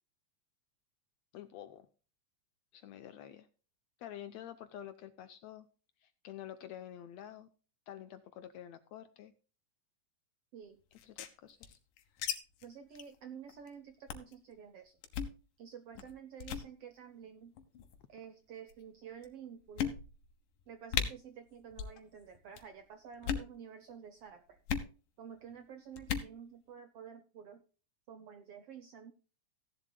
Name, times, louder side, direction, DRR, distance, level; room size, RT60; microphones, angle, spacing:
voice 1, 1.3-1.9 2.7-3.5 4.0-5.7 6.0-7.5 7.9-9.3 11.0-11.8, left 11 dB, 75° left, 10 dB, 1.7 m, -48 dB
sound 1, 10.9-12.3 12.6-12.7 13.0-13.2 13.5-13.7 14.1-14.3 15.0-15.4 16.0-16.1 16.4-16.7 17.6-18.0 18.7-18.8 19.2-19.3 19.8-20.3 20.6-20.7 20.9-21.1 21.7-22.0 22.2-22.6 23.1-23.5 24.7-24.9 26.0-26.3, left 8 dB, 90° left, 2.9 m, -36 dB
voice 2, 12.6-15.0 15.6-17.5 18.1-19.9 20.7-24.6 25.2-27.6 28.1-29.1, right 8 dB, 70° right, 8 dB, 1.4 m, -50 dB
16.0 x 11.0 x 2.2 m, 0.36 s
omnidirectional pair, 3.7 m